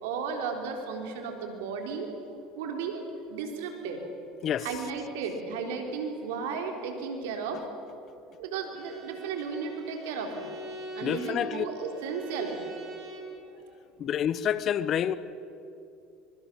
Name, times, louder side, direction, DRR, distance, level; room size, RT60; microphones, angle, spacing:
voice 1, 0.0-2.1 2.6-3.0 3.3-4.0 4.6-7.7 8.4-10.5 10.9-12.8, right 5 dB, 75° right, 4 dB, 3.7 m, -34 dB
Bowed string instrument, 8.7-13.4, right 2 dB, 50° right, 6.9 m, -42 dB
voice 2, 11.0-11.6 14.0-15.1, left 10 dB, 50° left, 16 dB, 1.0 m, -28 dB
24.0 x 23.5 x 7.4 m, 2.7 s
hypercardioid pair, 75°, 0 cm